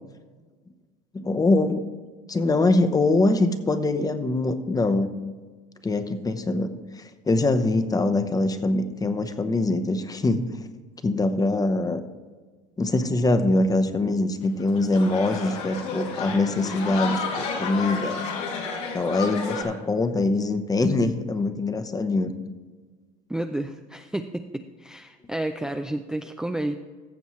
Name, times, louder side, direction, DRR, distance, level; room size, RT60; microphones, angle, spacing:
voice 1, 1.1-1.8 2.3-5.1 5.8-6.7 6.9-10.5 11.0-12.0 12.8-18.2 18.9-22.3, left 2 dB, 20° left, 9 dB, 0.8 m, -23 dB
sound 1, 14.4-19.6, left 4 dB, 80° left, 2.3 m, -31 dB
voice 2, 23.3-26.7, right 1 dB, 5° right, 5 dB, 0.4 m, -31 dB
15.0 x 7.0 x 3.1 m, 1.4 s
supercardioid pair, 100°, 19 cm